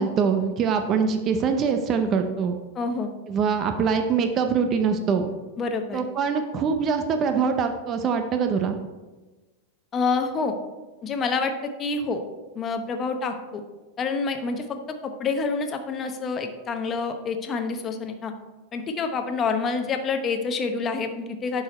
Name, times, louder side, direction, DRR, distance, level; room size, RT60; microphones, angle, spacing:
voice 1, 0.0-2.6 3.3-5.3 5.9-8.8, right 6 dB, 30° right, 6 dB, 0.6 m, -23 dB
voice 2, 2.8-3.1 5.6-6.0 9.9-10.5 11.0-11.5 11.8-12.2 12.6-13.6 14.0-14.8 15.0-18.3 18.7-21.6, left 4 dB, 25° left, 6 dB, 0.9 m, -27 dB
10.5 x 4.8 x 4.3 m, 1.2 s
supercardioid pair, 145°, 0 cm